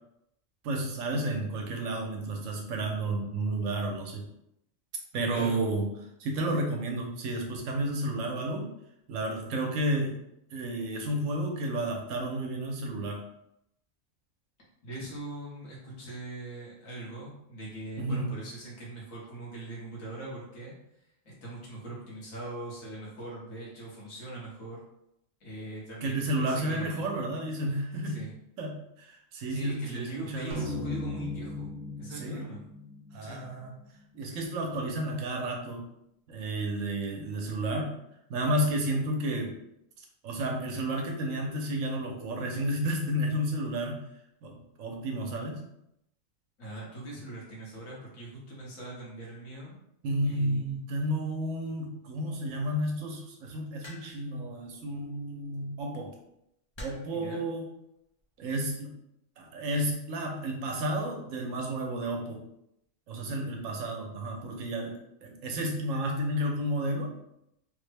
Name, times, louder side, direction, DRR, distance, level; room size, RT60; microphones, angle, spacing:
voice 1, 0.6-4.3 5.1-5.9 6.2-8.7 9.1-10.2 10.5-13.2 18.0-18.3 26.0-28.3 28.6-30.7 32.2-32.4 33.1-33.7 34.1-35.8 36.3-37.9 38.3-39.6 40.0-44.0 44.4-44.5 44.8-45.6 50.0-56.1 56.8-57.7 58.4-58.9 59.4-62.4 63.1-67.1, right 1 dB, 75° right, 1 dB, 1.0 m, -31 dB
voice 2, 14.8-20.7 21.2-24.8 25.4-27.0 28.0-28.3 29.5-31.7 32.0-32.6 33.2-33.5 46.6-49.7 50.2-50.7 57.1-57.4, right 1 dB, 80° left, -5 dB, 1.6 m, -41 dB
sound 1, 30.5-34.0, left 2 dB, 25° right, 1.1 m, -38 dB
sound 2, 53.8-54.3 55.6-55.8 56.7-57.2 58.2-58.5, left 1 dB, 35° left, 0.4 m, -45 dB
3.5 x 2.1 x 3.3 m, 0.80 s
omnidirectional pair, 1.4 m